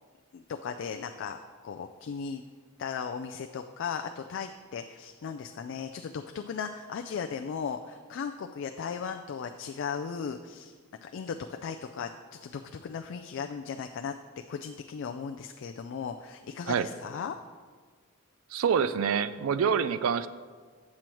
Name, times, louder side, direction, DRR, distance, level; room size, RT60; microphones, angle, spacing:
voice 1, 0.3-1.4 1.6-2.4 2.8-10.7 11.0-14.1 14.5-17.4, left 6 dB, 60° left, 5 dB, 0.3 m, -37 dB
voice 2, 18.5-20.3, right 7 dB, 80° right, 14 dB, 0.4 m, -26 dB
8.3 x 7.6 x 3.0 m, 1.5 s
head